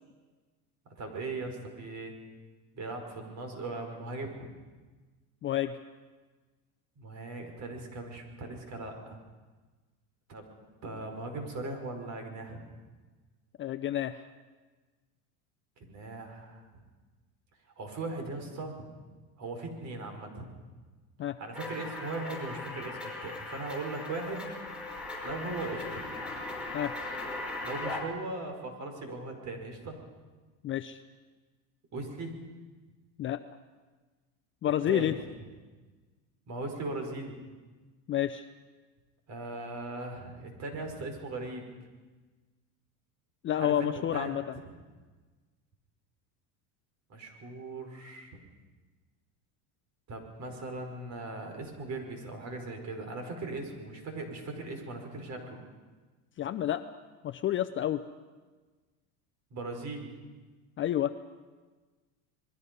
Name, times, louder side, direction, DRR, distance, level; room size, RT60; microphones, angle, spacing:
voice 1, 0.9-2.2 2.7-4.5 7.0-9.2 10.3-10.5 10.8-12.7 15.8-16.8 17.8-18.8 19.4-20.4 21.4-24.6 25.2-26.1 27.6-30.0 31.9-32.4 34.6-35.1 36.5-37.4 39.3-41.7 43.6-44.3 47.1-48.4 50.1-55.6 59.5-60.1, right 2 dB, 40° right, 4 dB, 5.4 m, -39 dB
voice 2, 5.4-5.8 13.6-14.2 21.2-21.4 26.7-26.9 30.6-31.0 33.2-33.4 34.6-35.1 38.1-38.5 43.4-44.4 56.4-56.8 57.2-58.0 60.8-61.1, left 11 dB, 30° left, 10 dB, 0.6 m, -29 dB
sound 1, 21.5-28.0, left 2 dB, ahead, 5.8 m, -38 dB
28.0 x 21.5 x 5.5 m, 1.3 s
supercardioid pair, 130°, 43 cm